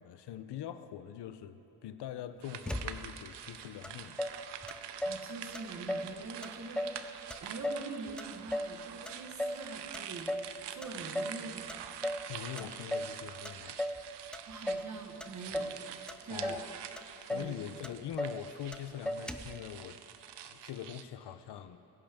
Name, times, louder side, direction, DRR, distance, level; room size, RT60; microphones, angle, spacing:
voice 1, 0.0-4.2 12.3-13.8 16.3-16.7 17.3-20.0 20.4-21.8, left 10 dB, 85° left, 11 dB, 0.7 m, -43 dB
sound 1, 2.4-21.0, right 9 dB, 90° right, 0.7 m, -46 dB
Motor vehicle (road), 2.7-3.3 3.8-3.9 4.2-5.3 5.5-6.1 6.4-7.0 7.3-8.8 9.1-9.7 9.9-10.5 10.8-11.4 11.7-12.3 12.6-13.2 13.5-14.0 14.3-14.9 15.2-15.8 16.1-16.7 17.0-17.1 17.3-17.5 17.8-18.4 18.7-18.8 19.1-19.6, equal, 5° left, 0.3 m, -36 dB
voice 2, 5.0-7.1 7.4-10.3 10.7-11.7 12.6-12.7 14.5-15.8 16.2-16.6 17.3-17.6 20.6-20.7, right 3 dB, 45° right, 3 dB, 1.4 m, -44 dB
21.5 x 10.5 x 3.6 m, 3.0 s
wide cardioid pair, 150°, 40 cm